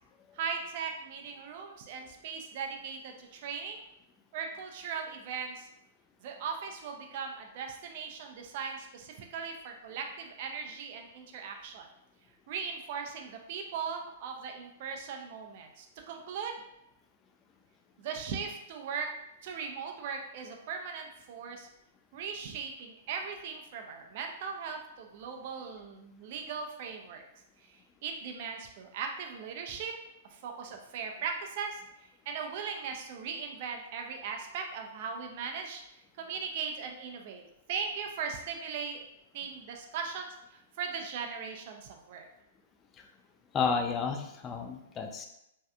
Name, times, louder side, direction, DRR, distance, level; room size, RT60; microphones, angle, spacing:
voice 1, 0.3-3.8 4.3-5.7 6.2-11.9 12.5-16.6 18.0-19.1 19.4-21.7 22.1-27.2 27.7-29.9 30.3-31.8 32.3-35.8 36.2-37.4 37.7-39.1 39.3-42.2, right 6 dB, 45° right, 3 dB, 0.4 m, -38 dB
voice 2, 43.5-45.2, left 5 dB, 20° left, 4 dB, 0.4 m, -31 dB
3.1 x 2.6 x 2.3 m, 0.81 s
figure-of-eight pair, 105°, 0 cm